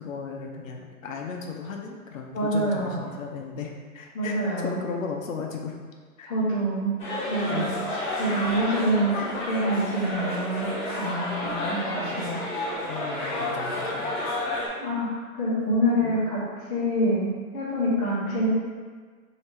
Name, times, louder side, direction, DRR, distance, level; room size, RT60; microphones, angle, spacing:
voice 1, 0.0-4.4 4.6-5.7 6.2-6.3 7.4-7.8 12.8-14.2 15.6-16.3, left 5 dB, 65° left, 1 dB, 0.7 m, -36 dB
voice 2, 2.3-3.1 4.1-4.8 6.2-6.9 7.3-7.7 8.2-12.4 14.8-16.4 16.7-18.5, right 1 dB, 10° left, -12 dB, 0.6 m, -26 dB
sound 1, 7.0-14.7, left 1 dB, 35° left, 1.1 m, -30 dB
3.2 x 2.8 x 4.5 m, 1.5 s
hypercardioid pair, 165°, 43 cm